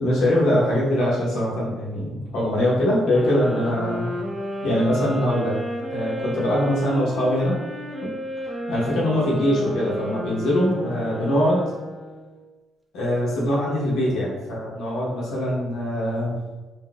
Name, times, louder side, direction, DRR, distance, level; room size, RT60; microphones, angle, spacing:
voice 1, 0.0-4.1 4.6-5.6 5.9-7.6 8.0-8.1 8.7-11.6 12.9-16.4, left 1 dB, 85° left, -6 dB, 1.1 m, -22 dB
sound 1, 3.1-12.3, equal, 10° right, 0.6 m, -32 dB
3.8 x 2.2 x 2.4 m, 1.2 s
cardioid pair, 90°, 0 cm